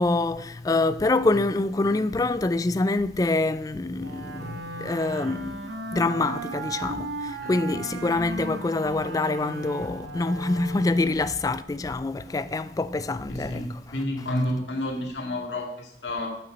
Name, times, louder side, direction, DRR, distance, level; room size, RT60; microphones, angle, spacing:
voice 1, 0.0-13.6, left 2 dB, 20° left, 0.3 m, -26 dB
Wind instrument woodwind instrument, 4.0-11.4, right 2 dB, 85° right, 1.2 m, -36 dB
voice 2, 7.4-7.8 13.3-16.4, left 1 dB, 85° left, 2.0 m, -30 dB
8.4 x 6.8 x 5.2 m
head